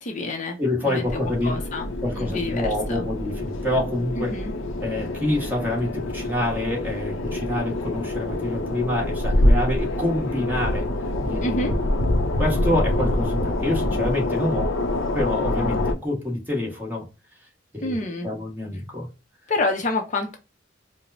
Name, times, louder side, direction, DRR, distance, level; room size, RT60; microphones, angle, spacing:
voice 1, 0.0-0.6 0.8-3.0 4.2-4.5 11.4-11.7 17.8-18.3 19.5-20.4, left 2 dB, 40° left, 0.6 m, -28 dB
voice 2, 0.6-1.7 2.0-4.3 4.8-10.9 11.2-11.8 12.4-14.7 15.1-17.0 17.7-18.0 18.2-19.1, left 1 dB, 10° right, 1.3 m, -27 dB
sound 1, 1.1-15.9, left 1 dB, 90° left, 0.6 m, -26 dB
4.9 x 2.0 x 2.6 m
head